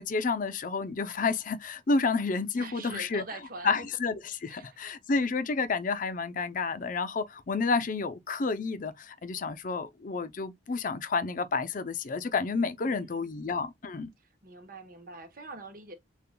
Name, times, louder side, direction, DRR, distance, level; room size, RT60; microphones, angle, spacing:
voice 1, 0.0-3.2 3.6-14.1, left 4 dB, 50° left, 0.5 m, -30 dB
voice 2, 2.5-3.9 4.5-4.9 12.8-13.3 14.4-15.9, right 2 dB, 55° right, 1.1 m, -44 dB
6.7 x 2.4 x 2.2 m
head